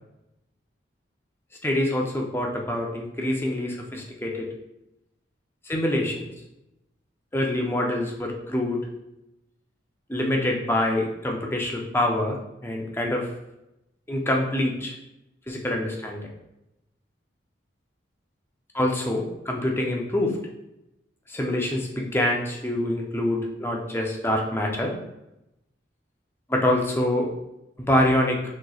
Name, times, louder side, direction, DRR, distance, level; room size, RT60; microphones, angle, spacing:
voice 1, 1.6-4.5 5.7-6.3 7.3-8.8 10.1-13.3 14.1-15.0 15.5-16.2 18.7-20.4 21.3-24.9 26.5-27.3 27.8-28.4, left 1 dB, 10° left, 0 dB, 0.6 m, -25 dB
6.3 x 3.1 x 2.3 m, 0.89 s
head